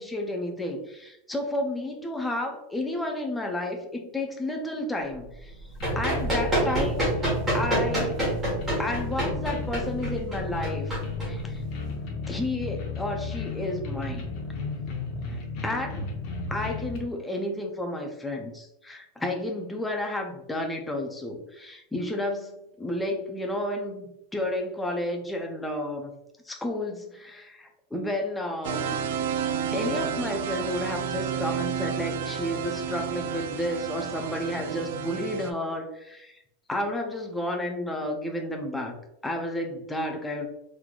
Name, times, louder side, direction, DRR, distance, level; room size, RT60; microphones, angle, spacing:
voice 1, 0.0-5.6 6.0-7.1 7.5-8.2 8.8-11.0 11.2-11.6 12.3-14.3 15.3-16.1 16.5-26.1 26.4-29.0 29.7-36.4 36.7-39.0 39.2-40.5, left 1 dB, 5° left, 2 dB, 0.4 m, -31 dB
Run, 5.5-11.9, right 1 dB, 10° right, 1.4 m, -28 dB
sound 1, 5.8-17.0, left 4 dB, 40° left, 0.7 m, -34 dB
sound 2, 28.6-35.5, right 7 dB, 65° right, 0.3 m, -31 dB
3.7 x 3.1 x 2.3 m, 0.84 s
supercardioid pair, 180°, 0 cm